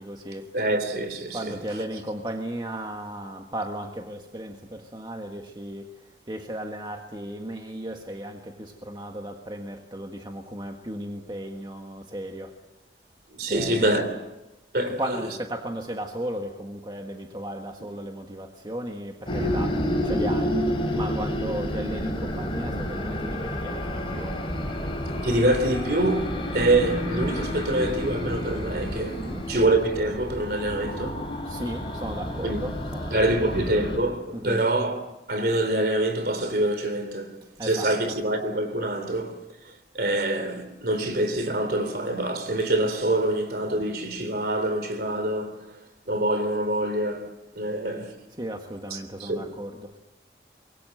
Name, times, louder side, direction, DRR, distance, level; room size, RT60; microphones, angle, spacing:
voice 1, 0.0-0.5 1.3-5.9 6.3-12.6 13.5-14.1 14.9-20.7 20.9-24.4 29.1-29.5 30.9-31.0 31.4-33.6 34.3-34.6 37.6-38.2 48.4-50.0, right 1 dB, 25° right, 1.7 m, -35 dB
voice 2, 0.5-1.6 13.3-14.2 14.7-15.2 25.2-31.3 32.4-32.7 33.1-39.4 39.9-45.6 46.1-48.2 48.9-49.4, right 1 dB, 60° right, 3.3 m, -25 dB
sound 1, 19.3-34.0, equal, 30° left, 4.7 m, -30 dB
25.0 x 22.5 x 7.9 m
head